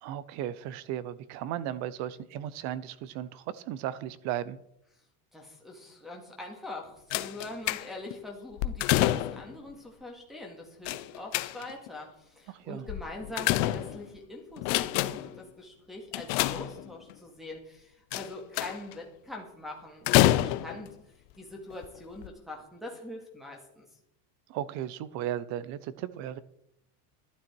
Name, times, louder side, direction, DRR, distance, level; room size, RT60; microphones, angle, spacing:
voice 1, 0.0-4.6 12.5-12.9 24.5-26.4, right 11 dB, 40° right, 18 dB, 0.6 m, -35 dB
voice 2, 5.3-21.0 21.4-23.8, left 2 dB, ahead, 2 dB, 2.1 m, -43 dB
sound 1, 7.1-8.1 8.6-9.5 10.9-11.9 12.9-14.2 14.6-15.4 16.1-17.1 18.1-18.9 20.1-20.9 21.7-21.8 22.2-22.3, left 15 dB, 35° left, 0.4 m, -27 dB
12.0 x 11.5 x 4.6 m, 0.78 s
cardioid pair, 170°, 46 cm